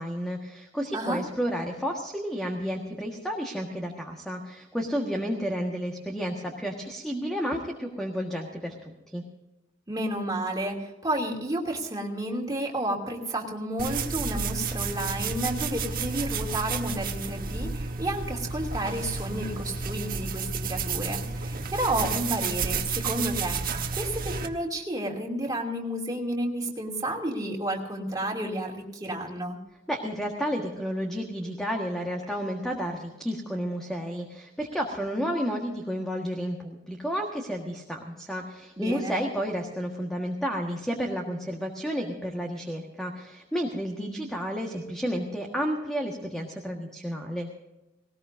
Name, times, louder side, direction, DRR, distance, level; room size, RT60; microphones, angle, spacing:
voice 1, 0.0-9.2 29.9-47.5, equal, 5° left, 0 dB, 1.6 m, -31 dB
voice 2, 9.9-29.6 38.8-39.2, right 1 dB, 20° right, -2 dB, 2.8 m, -31 dB
sound 1, 13.8-24.5, right 4 dB, 45° right, 1.3 m, -31 dB
19.5 x 19.0 x 2.7 m, 1.0 s
head